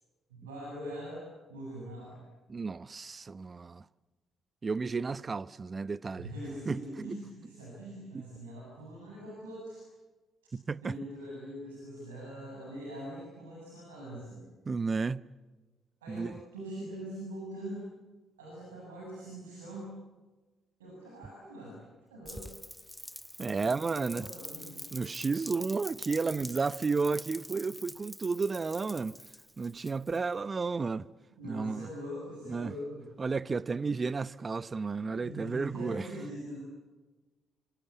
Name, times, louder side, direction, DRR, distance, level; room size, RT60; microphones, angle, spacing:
voice 1, 0.3-1.2 1.5-2.2 6.2-9.8 10.8-14.4 16.0-17.9 18.4-19.9 20.8-21.8 22.1-22.5 23.6-24.8 31.4-33.0 35.1-36.6, equal, 85° right, 7.8 m, -42 dB
voice 2, 2.5-3.8 4.6-6.3 6.6-7.2 8.1-8.2 10.5-11.0 14.7-15.3 16.1-16.3 23.4-24.3 24.9-29.2 29.6-31.1 31.5-31.9 32.5-32.7 33.2-36.1, right 4 dB, 35° right, 0.9 m, -32 dB
Rain, 22.2-30.3, equal, 5° left, 1.2 m, -46 dB
27.0 x 26.5 x 8.2 m
hypercardioid pair, 45°, 0 cm